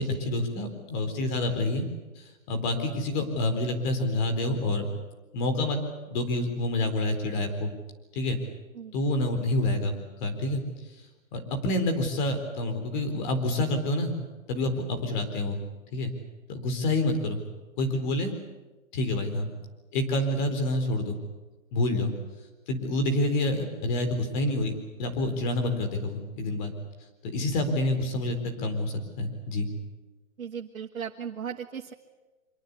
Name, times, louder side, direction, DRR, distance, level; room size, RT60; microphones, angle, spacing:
voice 1, 0.0-1.8 2.2-4.9 5.3-5.8 6.1-7.7 8.1-8.4 8.9-9.9 10.2-10.6 11.3-14.1 14.5-15.6 15.9-16.1 16.5-17.5 17.8-18.3 18.9-19.5 19.9-21.2 21.7-22.1 22.7-26.7 27.2-29.7, left 1 dB, 35° left, 7 dB, 4.3 m, -28 dB
voice 2, 30.4-31.9, right 7 dB, 85° right, 3 dB, 1.7 m, -36 dB
25.0 x 22.5 x 8.5 m, 1.1 s
hypercardioid pair, 155°, 40 cm